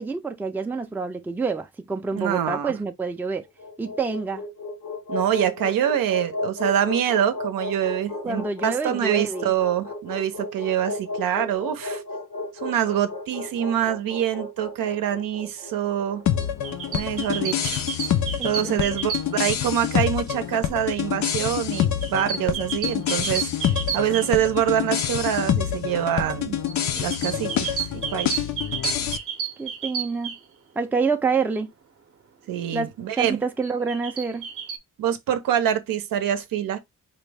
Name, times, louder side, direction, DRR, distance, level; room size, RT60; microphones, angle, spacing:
voice 1, 0.0-3.4 3.8-4.4 8.2-9.5 18.4-18.8 29.6-30.4 30.8-31.7 32.7-34.5, right 4 dB, 5° right, 0.4 m, -27 dB
voice 2, 2.2-2.7 5.1-12.0 12.6-16.2 16.9-17.8 18.4-19.1 19.4-26.6 27.0-27.8 28.1-28.4 32.5-33.4 35.0-36.8, right 10 dB, 85° right, 0.6 m, -25 dB
sound 1, 3.5-17.7, left 2 dB, 85° left, 1.8 m, -34 dB
sound 2, 16.3-29.2, left 10 dB, 60° left, 0.5 m, -26 dB
sound 3, 16.4-19.6 21.7-24.8 26.7-30.4 33.6-34.8, right 7 dB, 45° right, 0.7 m, -32 dB
4.0 x 2.1 x 3.3 m
cardioid pair, 110°, 33 cm